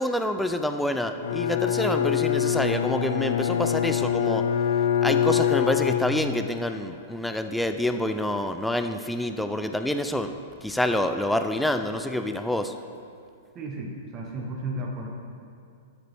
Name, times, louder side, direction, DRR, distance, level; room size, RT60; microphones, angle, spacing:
voice 1, 0.0-4.5 5.0-10.3 10.6-12.7, left 1 dB, 5° left, 7 dB, 0.3 m, -27 dB
Bowed string instrument, 1.2-6.7, left 9 dB, 80° left, 0.4 m, -25 dB
voice 2, 13.5-15.1, right 1 dB, 25° right, -1 dB, 1.0 m, -33 dB
13.0 x 6.6 x 3.5 m, 2.4 s
hypercardioid pair, 150°, 0 cm